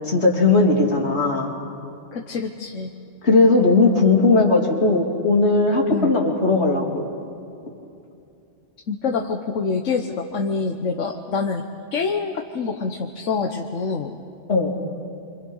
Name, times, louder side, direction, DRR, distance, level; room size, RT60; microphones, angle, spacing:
voice 1, 0.0-1.5 3.2-7.1 14.5-14.8, left 3 dB, 60° left, -2 dB, 3.4 m, -18 dB
voice 2, 2.1-2.9 5.9-6.1 8.9-11.7 11.9-14.2, left 4 dB, 80° left, 3 dB, 1.5 m, -26 dB
29.0 x 25.5 x 5.5 m, 2.7 s
omnidirectional pair, 1.3 m